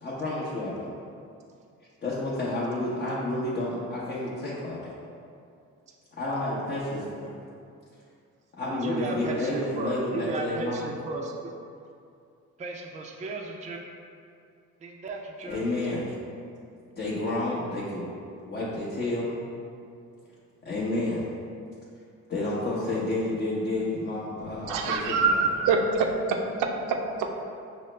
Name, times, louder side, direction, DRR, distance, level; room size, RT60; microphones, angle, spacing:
voice 1, 0.0-0.9 2.0-4.9 6.2-7.3 8.6-10.9 15.4-16.1 17.0-18.1 18.4-19.4 20.6-21.3 22.3-25.0 25.2-25.4, left 2 dB, 35° left, -7 dB, 0.7 m, -30 dB
voice 2, 8.7-11.3 12.6-13.8 14.8-15.9, right 3 dB, 25° right, 0 dB, 0.4 m, -34 dB
voice 3, 24.4-26.4 27.2-27.3, right 4 dB, 85° right, 3 dB, 0.5 m, -25 dB
5.4 x 2.0 x 3.2 m, 2.4 s
cardioid pair, 90°, 30 cm